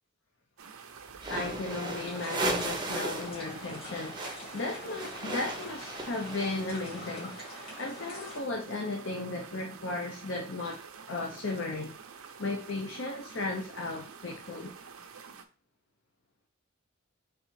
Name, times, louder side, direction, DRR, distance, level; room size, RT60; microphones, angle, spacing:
sound 1, 0.6-15.5, right 6 dB, 85° right, 0.5 m, -48 dB
sound 2, 1.1-3.4 3.6-6.8, right 2 dB, 20° right, 0.6 m, -36 dB
voice 1, 1.3-11.9 12.4-14.7, left 2 dB, 60° left, 0.6 m, -35 dB
sound 3, 2.0-8.4, left 1 dB, 25° left, 2.2 m, -45 dB
3.8 x 3.3 x 3.1 m
head